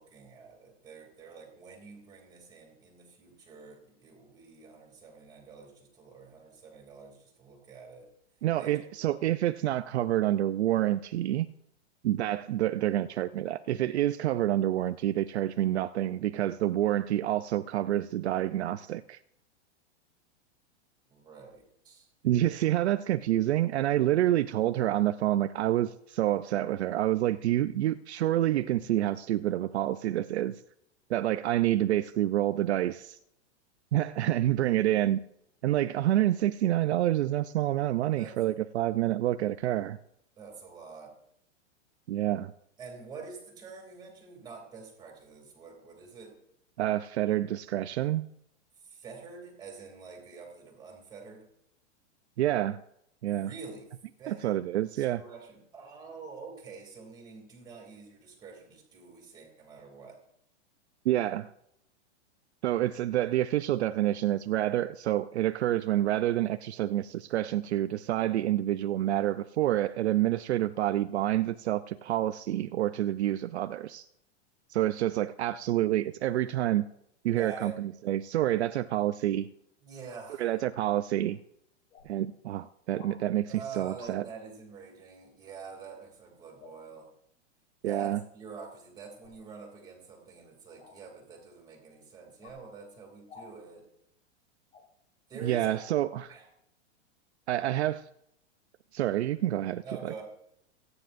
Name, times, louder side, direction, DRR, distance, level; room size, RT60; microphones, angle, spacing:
voice 1, 0.0-8.1 8.6-9.2 21.1-22.1 38.1-38.4 40.4-41.1 42.8-46.4 48.8-51.4 53.4-53.9 54.2-54.6 55.0-60.2 77.4-77.8 79.8-80.5 83.5-87.1 87.8-93.9 95.3-95.8 96.3-96.5 99.8-100.2, right 5 dB, 10° right, 1 dB, 2.8 m, -46 dB
voice 2, 8.4-11.5 12.0-19.2 22.2-30.6 31.1-33.2 33.9-35.2 35.6-40.0 42.1-42.5 46.8-48.2 52.4-52.8 53.2-53.5 54.3-55.2 61.0-61.5 62.6-74.1 74.7-76.9 77.2-79.5 80.4-81.4 82.1-84.2 87.8-88.2 95.4-96.3 97.5-98.0 98.9-99.8, right 13 dB, 65° right, 10 dB, 0.6 m, -28 dB
sound 1, 81.3-81.4 81.9-82.1 83.0-83.2 83.9-84.2 86.6-86.8 89.2-89.4 90.8-91.0 92.4-92.6 93.3-93.5 94.7-94.9, left 5 dB, 80° left, 4.5 m, -51 dB
28.5 x 9.8 x 2.6 m, 0.76 s
supercardioid pair, 175°, 36 cm